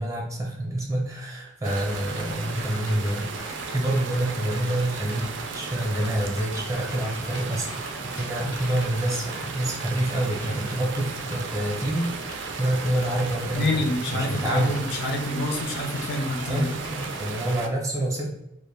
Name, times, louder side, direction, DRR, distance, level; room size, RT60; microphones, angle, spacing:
voice 1, 0.0-7.7 8.0-13.9 14.1-14.8 15.1-15.2 16.4-18.3, right 1 dB, 15° right, -2 dB, 0.5 m, -27 dB
sound 1, 1.6-17.7, right 5 dB, 80° right, 0.3 m, -35 dB
sound 2, 1.9-17.6, left 1 dB, 80° left, 0.9 m, -42 dB
voice 2, 13.5-16.7, left 2 dB, 60° left, 2 dB, 0.5 m, -27 dB
2.1 x 2.0 x 3.1 m, 0.89 s
head